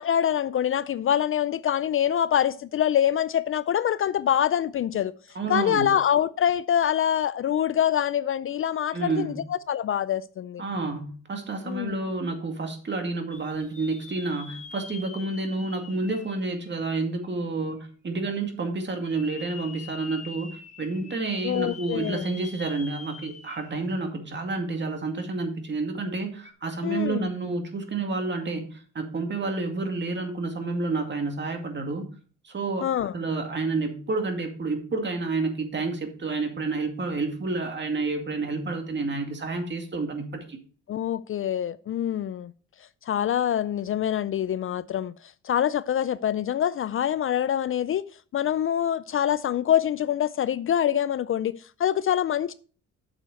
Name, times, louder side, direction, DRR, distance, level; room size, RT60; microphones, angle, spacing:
voice 1, 0.0-5.1 5.5-10.6 11.7-12.0 21.4-22.3 26.8-27.3 32.8-33.1 40.9-42.5 43.1-45.1 45.4-48.0 48.3-52.5, left 10 dB, 45° left, 0.4 m, -25 dB
voice 2, 5.3-5.9 8.9-9.4 10.6-32.1 32.4-32.9 33.1-40.6, right 3 dB, 35° right, 2.2 m, -29 dB
sound 1, 13.3-17.3 17.8-17.9 19.0-23.9 24.3-24.4 26.3-26.5, left 4 dB, 25° left, 1.2 m, -44 dB
8.8 x 6.5 x 4.4 m
cardioid pair, 90°, 30 cm